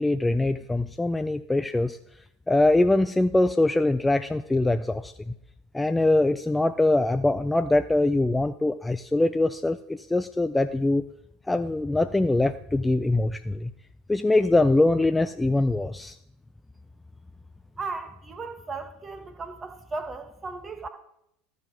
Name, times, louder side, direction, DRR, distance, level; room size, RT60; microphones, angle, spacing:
voice 1, 0.0-2.0 2.5-5.3 5.7-11.1 11.5-13.7 14.1-16.2, left 2 dB, 10° left, 10 dB, 0.3 m, -23 dB
voice 2, 17.8-20.9, right 3 dB, 20° right, 7 dB, 1.3 m, -36 dB
13.0 x 4.8 x 5.4 m, 0.77 s
figure-of-eight pair, 75°, 0 cm